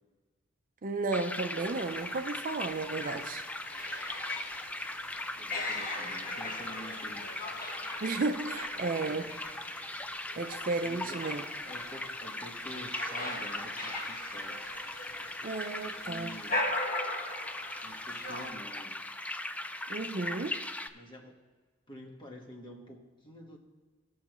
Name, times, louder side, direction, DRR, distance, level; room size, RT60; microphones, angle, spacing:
voice 1, 0.8-3.4 8.0-9.2 10.4-11.4 15.4-16.3 19.9-20.6, right 3 dB, 45° right, 6 dB, 0.6 m, -33 dB
sound 1, 1.1-20.9, left 1 dB, 5° left, 0.3 m, -39 dB
sound 2, 1.6-18.5, left 2 dB, 45° left, 1.4 m, -40 dB
voice 2, 5.4-7.5 8.7-9.3 10.3-10.4 10.8-11.4 11.6-14.6 15.8-16.8 17.8-19.0 20.9-21.4 21.9-23.6, equal, 25° left, 0 dB, 1.3 m, -48 dB
19.5 x 6.5 x 3.1 m, 1.4 s
head